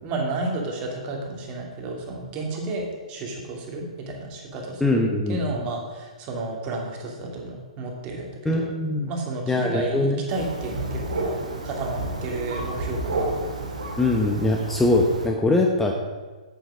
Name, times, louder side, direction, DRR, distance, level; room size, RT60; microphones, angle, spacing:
voice 1, 0.0-5.0 5.3-8.6 9.1-11.4 11.6-13.4, right 2 dB, 30° right, 0 dB, 2.5 m, -32 dB
voice 2, 4.8-5.4 8.4-9.1 9.5-10.2 14.0-15.9, left 2 dB, 5° left, 1 dB, 0.9 m, -22 dB
Thunder, 10.3-15.3, right 2 dB, 80° right, 2.3 m, -31 dB
8.3 x 7.7 x 6.2 m, 1.3 s
hypercardioid pair, 130°, 4 cm